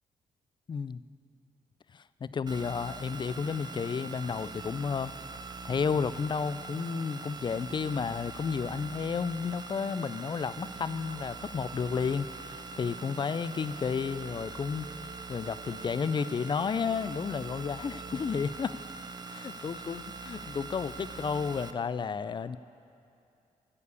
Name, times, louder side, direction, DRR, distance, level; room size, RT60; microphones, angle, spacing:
voice 1, 0.7-1.0 1.9-5.1 5.6-14.9 15.3-18.7 19.3-22.6, left 6 dB, 35° left, 16 dB, 0.3 m, -32 dB
sound 1, 2.5-21.7, right 4 dB, 30° right, 0.5 m, -43 dB
sound 2, 10.8-18.9, right 4 dB, 60° right, 1.8 m, -55 dB
13.5 x 4.8 x 8.3 m, 2.6 s
cardioid pair, 75°, 14 cm